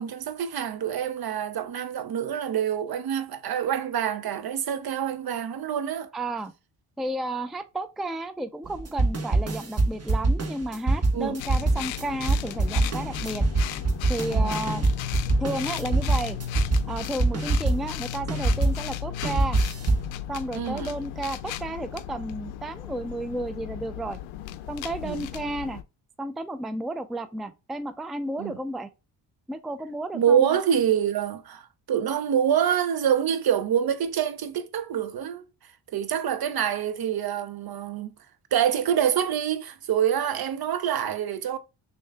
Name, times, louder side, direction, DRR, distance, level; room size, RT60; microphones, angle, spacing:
voice 1, 0.0-6.1 11.1-11.4 14.3-14.6 20.5-20.9 25.0-25.3 28.4-28.6 30.1-35.4 35.9-38.1 38.5-41.6, right 9 dB, 50° right, 0.8 m, -26 dB
voice 2, 6.1-6.5 7.0-13.4 14.1-14.9 15.4-16.4 16.9-19.6 20.3-24.2 24.7-25.8 26.2-28.9 29.5-30.6, right 1 dB, ahead, 0.4 m, -32 dB
sound 1, 8.6-18.8 19.2-20.1, right 2 dB, 30° right, 1.3 m, -24 dB
sound 2, 11.4-25.8, left 11 dB, 75° left, 0.6 m, -35 dB
6.3 x 2.8 x 2.2 m
supercardioid pair, 55°, 47 cm